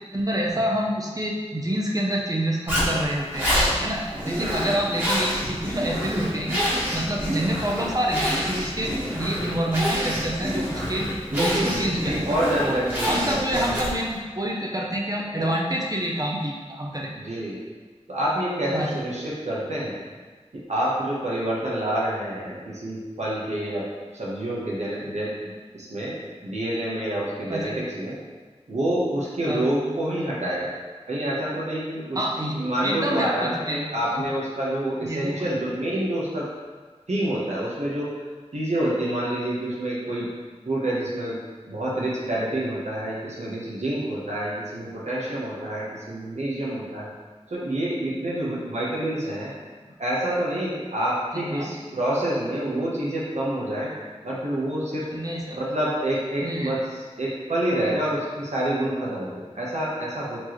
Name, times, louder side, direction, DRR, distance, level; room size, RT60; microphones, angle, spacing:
voice 1, 0.1-3.5 3.8-12.2 12.7-12.8 13.0-17.1 18.7-19.0 27.5-27.8 29.5-29.7 32.1-33.8 34.1-34.2 35.0-35.5 51.3-51.7 55.1-55.6 56.4-56.7, right 1 dB, 30° right, -3 dB, 0.6 m, -27 dB
Zipper (clothing), 2.7-14.1, equal, 15° right, 1.4 m, -27 dB
voice 2, 11.3-13.6 15.4-15.5 17.2-17.6 18.1-20.0 20.7-23.9 24.1-26.1 26.4-28.2 28.7-30.7 31.1-36.4 37.1-38.1 38.5-40.3 40.7-41.4 41.7-47.1 47.5-49.5 50.0-53.9 54.2-55.1 55.5-56.8 57.2-60.4, right 1 dB, 80° right, -6 dB, 1.0 m, -27 dB
4.4 x 3.0 x 3.0 m, 1.4 s
wide cardioid pair, 50°, 11 cm